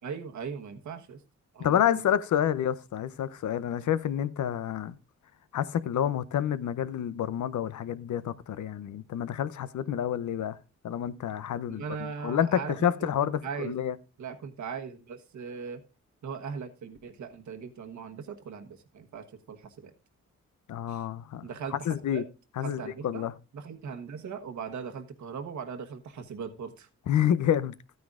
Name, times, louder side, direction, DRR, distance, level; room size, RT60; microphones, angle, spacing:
voice 1, 0.0-1.2 1.5-2.0 11.7-13.1 13.4-13.7 14.2-15.8 16.2-19.9 20.9-21.0 21.4-22.2 22.6-23.3 23.5-26.9, right 6 dB, 75° right, 1.3 m, -39 dB
voice 2, 1.6-4.9 5.5-10.6 10.8-11.8 12.2-14.0 20.7-22.2 22.6-23.3 27.1-27.7, left 10 dB, 80° left, 0.7 m, -28 dB
13.5 x 9.4 x 2.5 m
wide cardioid pair, 110°, 29 cm